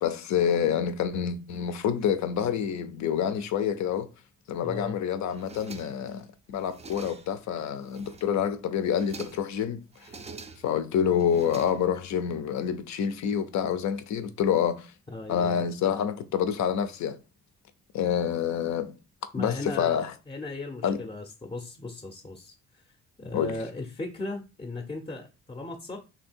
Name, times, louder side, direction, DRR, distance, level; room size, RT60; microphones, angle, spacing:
voice 1, 0.0-4.1 4.5-10.1 10.6-14.9 15.3-17.2 17.9-18.9 19.4-20.1 20.8-21.1 23.3-23.6, left 8 dB, 65° left, 0.6 m, -27 dB
voice 2, 4.6-5.0 15.1-15.6 19.3-19.9 20.3-22.8 23.2-26.0, left 2 dB, 20° left, 0.6 m, -37 dB
sound 1, 5.3-6.2 6.5-7.4 7.8-8.4 8.8-9.6 9.9-10.8 11.2-12.2, right 4 dB, 20° right, 0.4 m, -46 dB
2.8 x 2.8 x 4.3 m
cardioid pair, 90°, 30 cm